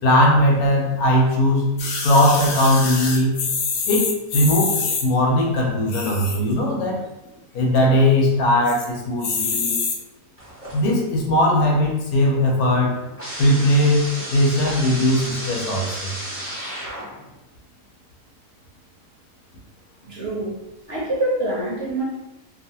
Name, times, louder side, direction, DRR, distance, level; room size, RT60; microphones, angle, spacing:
voice 1, 0.0-3.4 3.9-7.0 7.5-9.8 10.7-13.0 13.4-16.1, left 1 dB, 85° left, -1 dB, 1.2 m, -19 dB
sound 1, 1.8-5.0 5.8-6.5 7.0-7.1 7.3-7.4 7.7-8.1 8.7-8.9 9.2-10.0 10.7-10.8, left 4 dB, 65° left, 0.6 m, -26 dB
sound 2, 10.4-11.2 11.5-17.3, equal, 10° left, 0.9 m, -34 dB
voice 2, 20.1-20.6 20.9-22.0, right 1 dB, 55° right, -5 dB, 0.8 m, -25 dB
2.8 x 2.4 x 2.7 m, 1.0 s
omnidirectional pair, 1.6 m